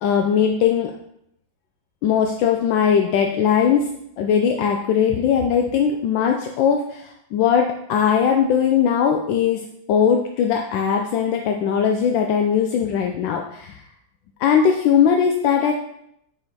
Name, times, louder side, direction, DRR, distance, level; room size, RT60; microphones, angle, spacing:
voice 1, 0.0-0.9 2.0-13.8 14.4-15.7, left 7 dB, 75° left, 3 dB, 1.3 m, -19 dB
5.7 x 4.9 x 4.0 m, 0.76 s
omnidirectional pair, 2.1 m